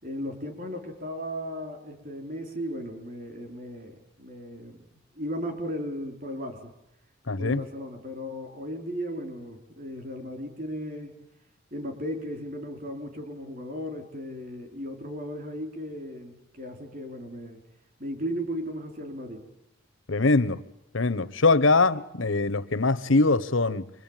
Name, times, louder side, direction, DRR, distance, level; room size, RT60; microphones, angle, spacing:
voice 1, 0.0-4.9 5.1-6.7 7.4-11.1 11.7-17.6 18.0-19.4, equal, 45° right, 4.6 m, -36 dB
voice 2, 7.3-7.6 20.1-20.6 20.9-23.9, left 3 dB, 75° left, 1.0 m, -22 dB
27.5 x 22.5 x 9.1 m
head